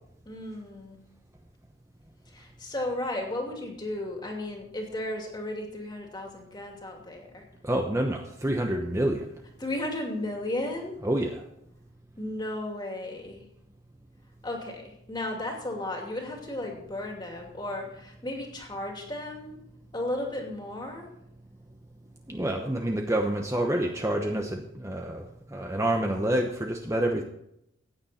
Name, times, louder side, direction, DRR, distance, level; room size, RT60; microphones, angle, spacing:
voice 1, 0.2-1.0 2.3-7.4 9.6-11.0 12.2-13.5 14.4-19.6 19.9-21.1, left 1 dB, 20° left, 1 dB, 2.6 m, -34 dB
voice 2, 7.6-9.3 11.0-11.5 22.3-27.2, right 1 dB, 15° right, 2 dB, 0.9 m, -28 dB
15.5 x 9.6 x 4.3 m, 0.78 s
head